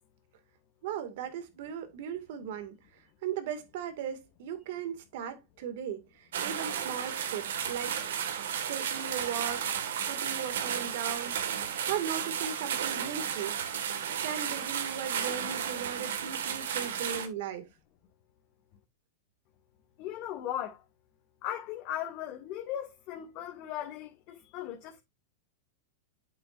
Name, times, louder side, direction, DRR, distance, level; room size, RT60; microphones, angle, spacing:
voice 1, 0.8-8.0 8.7-11.4 11.9-13.6 14.2-17.7, right 8 dB, 65° right, 2.2 m, -38 dB
sound 1, 6.3-17.3, right 8 dB, 85° right, 1.8 m, -33 dB
voice 2, 20.0-20.8 21.4-25.0, left 11 dB, 45° left, 1.9 m, -37 dB
8.9 x 7.6 x 2.6 m
supercardioid pair, 140°, 0 cm